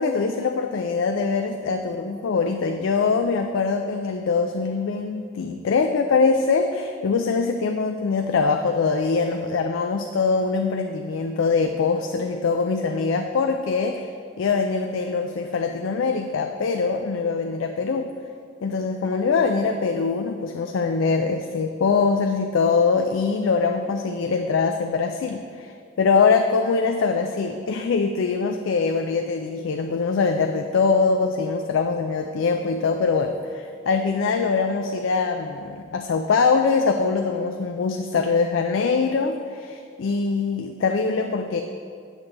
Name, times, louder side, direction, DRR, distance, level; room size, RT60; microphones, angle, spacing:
voice 1, 0.0-14.1 14.4-18.1 18.6-41.6, left 4 dB, 75° left, 5 dB, 0.4 m, -23 dB
8.4 x 6.3 x 3.8 m, 2.2 s
head